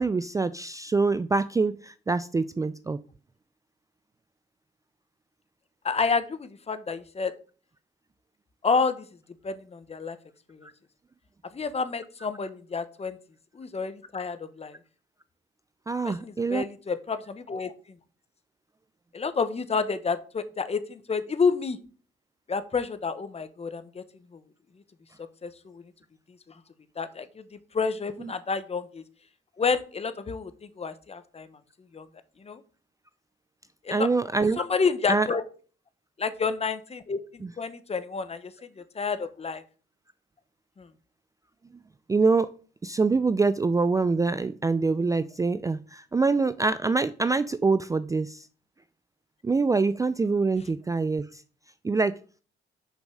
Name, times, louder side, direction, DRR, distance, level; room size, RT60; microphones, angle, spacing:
voice 1, 0.0-3.0 10.6-10.7 15.9-16.6 28.2-28.3 33.9-34.6 35.1-35.3 37.4-37.5 42.1-42.5 42.8-48.5 49.4-51.4 51.8-52.2, right 4 dB, 15° right, 0.4 m, -25 dB
voice 2, 5.8-7.3 8.6-9.0 9.4-10.2 10.5-10.7 11.5-13.2 13.5-14.8 16.0-17.7 19.1-21.8 22.5-24.0 24.3-24.4 25.4-25.8 27.0-27.4 27.7-29.0 29.6-30.5 30.8-31.5 31.9-32.1 32.4-32.6 33.8-34.1 34.6-35.4 36.2-38.5 38.8-39.6 40.8-40.9, left 5 dB, 30° left, 1.0 m, -29 dB
6.3 x 5.3 x 6.3 m
cardioid pair, 90°, 20 cm